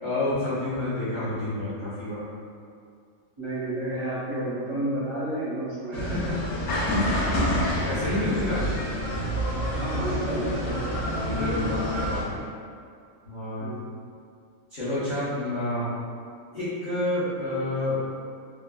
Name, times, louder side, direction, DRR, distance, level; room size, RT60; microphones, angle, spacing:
voice 1, 0.0-2.2 6.1-6.3 7.8-8.7 11.1-12.4 13.3-13.7 14.7-15.9 16.5-18.0, left 1 dB, 45° left, -13 dB, 0.7 m, -29 dB
voice 2, 3.4-6.1 9.7-11.2 13.6-13.9, right 1 dB, 35° right, -13 dB, 0.5 m, -31 dB
sound 1, 5.9-12.2, equal, 75° left, 1.0 m, -27 dB
3.3 x 2.0 x 2.2 m, 2.3 s
omnidirectional pair, 1.6 m